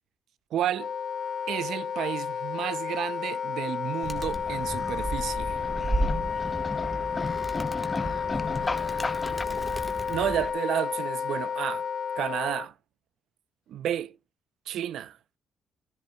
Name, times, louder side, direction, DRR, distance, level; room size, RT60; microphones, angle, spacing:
voice 1, 0.5-0.9 1.5-5.6 10.1-11.8 12.2-12.7 13.7-14.1 14.7-15.2, right 10 dB, 75° right, 0.5 m, -31 dB
Wind instrument woodwind instrument, 0.7-12.7, left 7 dB, 55° left, 0.6 m, -32 dB
Animal, 4.0-10.5, right 1 dB, ahead, 1.6 m, -34 dB
Marching Band, 4.2-9.4, left 3 dB, 20° left, 0.7 m, -36 dB
voice 2, 7.1-9.9, left 6 dB, 90° left, 2.3 m, -48 dB
14.5 x 10.5 x 2.3 m
cardioid pair, 90°, 0 cm